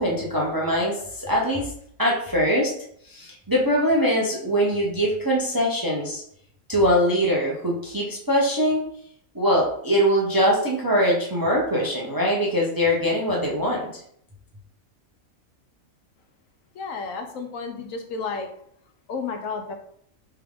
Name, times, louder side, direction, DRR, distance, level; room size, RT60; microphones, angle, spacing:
voice 1, 0.0-1.6 2.0-2.7 3.1-6.2 6.7-8.9 9.3-13.8, equal, 25° right, -3 dB, 0.5 m, -22 dB
voice 2, 16.7-18.5 19.1-19.7, left 4 dB, 75° left, 5 dB, 1.0 m, -32 dB
3.5 x 3.4 x 3.5 m, 0.67 s
omnidirectional pair, 1.4 m